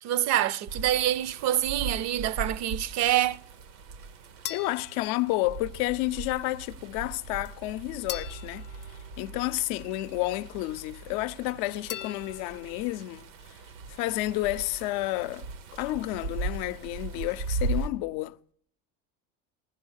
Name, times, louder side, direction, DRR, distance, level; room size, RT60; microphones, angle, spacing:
voice 1, 0.0-3.4, right 12 dB, 55° right, 0.5 m, -26 dB
sound 1, 0.7-17.9, right 3 dB, 90° right, 1.0 m, -38 dB
sound 2, 4.4-5.9 8.1-9.9 11.9-13.0, left 11 dB, 35° left, 0.5 m, -42 dB
voice 2, 4.5-8.7 9.2-13.2 13.9-15.5 15.7-18.4, left 18 dB, 85° left, 0.5 m, -30 dB
15.5 x 11.0 x 6.4 m
cardioid pair, 135°, 32 cm